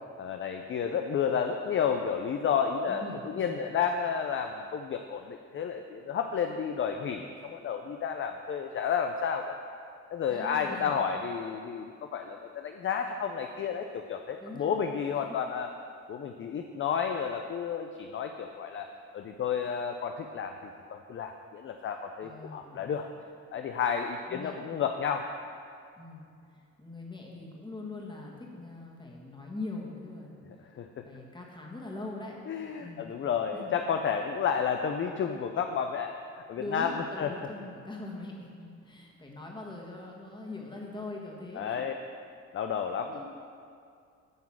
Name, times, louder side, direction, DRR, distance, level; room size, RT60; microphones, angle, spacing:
voice 1, 0.2-9.6 10.1-15.7 16.1-18.9 19.1-23.1 23.5-25.3 30.7-31.0 32.5-36.1 36.5-37.3 41.6-41.9 42.5-43.3, left 7 dB, 40° left, 5 dB, 0.5 m, -31 dB
voice 2, 2.8-3.7 10.3-10.9 14.4-14.7 22.2-22.8 24.2-24.6 26.0-30.4 31.0-33.0 33.5-33.7 36.6-41.7 43.1-43.3, left 2 dB, 15° left, -2 dB, 1.7 m, -42 dB
9.3 x 3.9 x 7.2 m, 2.3 s
cardioid pair, 90°, 30 cm